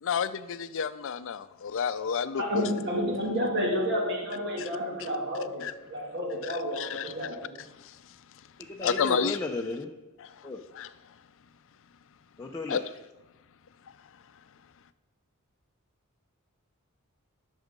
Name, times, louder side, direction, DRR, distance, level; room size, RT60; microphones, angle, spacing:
voice 1, 0.0-2.6 5.6-5.7 6.4-7.1 8.8-9.4 10.7-10.9 12.7-12.8, left 6 dB, 60° left, 14 dB, 0.5 m, -30 dB
voice 2, 2.4-7.6, equal, 50° right, 0 dB, 2.1 m, -30 dB
voice 3, 8.6-9.9 10.4-10.6 12.4-12.8, left 2 dB, 15° left, 0 dB, 0.6 m, -34 dB
11.0 x 6.4 x 5.2 m, 1.1 s
head